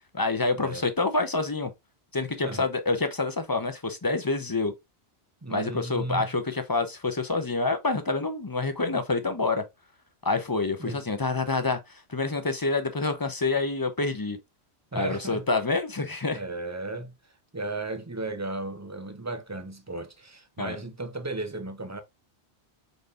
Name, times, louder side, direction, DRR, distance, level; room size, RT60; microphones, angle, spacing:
voice 1, 0.1-1.7 2.1-4.7 5.5-9.6 10.2-14.4 14.9-16.4 20.6-20.8, left 3 dB, 25° left, 0.7 m, -27 dB
voice 2, 5.4-6.3 10.8-11.0 14.9-15.5 16.3-17.1 17.5-22.0, right 2 dB, 20° right, 0.6 m, -35 dB
5.2 x 4.1 x 2.5 m
omnidirectional pair, 1.1 m